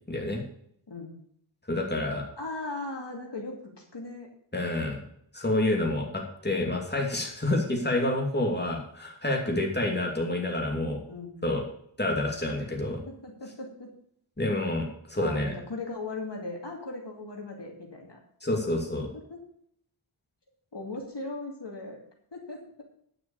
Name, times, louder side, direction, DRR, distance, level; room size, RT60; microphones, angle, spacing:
voice 1, 0.1-0.4 1.7-2.2 4.5-5.0 5.3-11.0 11.4-11.6 12.0-13.0 14.4-15.5 18.4-19.1, left 1 dB, 20° left, 0 dB, 2.8 m, -28 dB
voice 2, 2.4-4.3 11.1-11.3 13.1-13.9 15.2-18.2 19.3-19.4 20.7-22.0 22.3-22.8, left 2 dB, 55° left, 0 dB, 2.6 m, -38 dB
10.5 x 6.1 x 7.1 m, 0.68 s
cardioid pair, 40°, 49 cm